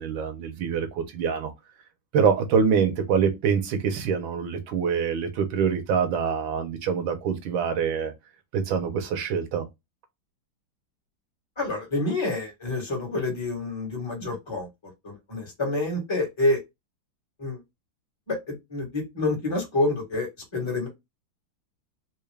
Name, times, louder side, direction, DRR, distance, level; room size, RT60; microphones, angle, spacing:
voice 1, 0.0-1.5 2.1-8.1 8.5-9.7, right 6 dB, 85° right, 1.6 m, -25 dB
voice 2, 11.6-14.7 15.0-16.6 17.4-17.6 18.3-20.9, left 2 dB, 15° left, 1.4 m, -28 dB
3.7 x 2.4 x 3.3 m
omnidirectional pair, 2.1 m